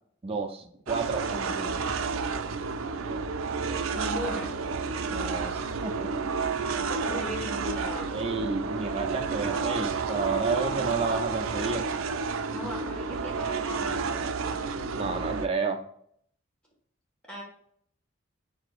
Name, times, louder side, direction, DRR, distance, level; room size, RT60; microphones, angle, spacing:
voice 1, 0.2-1.8 5.1-6.1 8.1-11.9 14.9-15.8, right 4 dB, 30° right, 5 dB, 0.5 m, -31 dB
sound 1, 0.9-15.5, right 5 dB, 80° right, 0.4 m, -30 dB
voice 2, 3.9-4.5 6.9-8.2 12.5-14.6 17.3-17.4, left 2 dB, 5° left, -4 dB, 1.5 m, -38 dB
4.7 x 3.6 x 2.4 m, 0.66 s
head